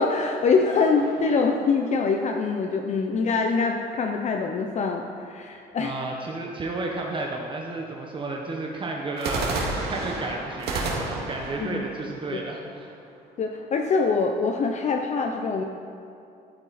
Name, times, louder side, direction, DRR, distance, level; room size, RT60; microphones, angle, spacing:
voice 1, 0.0-5.9 11.6-11.8 12.3-12.4 13.4-15.6, left 4 dB, 45° left, 3 dB, 0.8 m, -24 dB
sound 1, 1.0-2.4 9.2-13.1, right 2 dB, 70° right, 2.2 m, -32 dB
voice 2, 5.8-9.5 9.9-13.0, right 2 dB, 30° right, 0 dB, 1.2 m, -32 dB
12.5 x 8.8 x 4.3 m, 2.6 s
cardioid pair, 110°, 17 cm